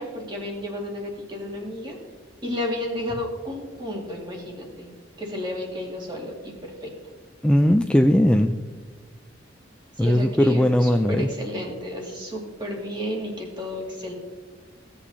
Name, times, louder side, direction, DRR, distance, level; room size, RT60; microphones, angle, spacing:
voice 1, 0.0-2.0 2.4-4.9 5.2-6.9 10.0-14.1, left 1 dB, 25° right, -1 dB, 2.2 m, -32 dB
voice 2, 7.4-8.6 10.0-11.3, left 1 dB, 5° left, 5 dB, 0.3 m, -18 dB
16.5 x 8.1 x 2.8 m, 1.4 s
head